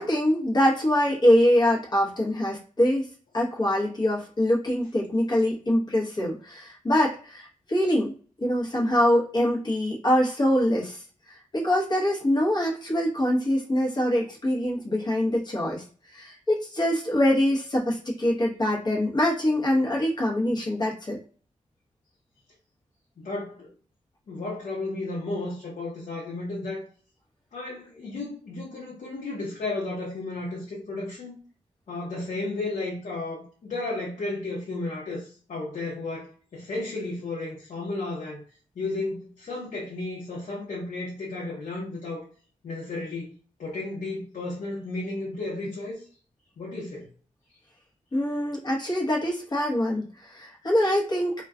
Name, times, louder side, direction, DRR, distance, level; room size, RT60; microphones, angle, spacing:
voice 1, 0.0-3.1 3.3-8.1 8.4-21.2 48.1-51.3, left 1 dB, 35° left, 0.9 m, -24 dB
voice 2, 23.2-23.7 24.3-26.9 27.5-31.4 31.9-38.4 38.8-42.2 42.6-43.3 43.6-46.0 46.6-47.1, left 2 dB, 70° left, 0.8 m, -33 dB
2.3 x 2.2 x 3.6 m
wide cardioid pair, 175°, 13 cm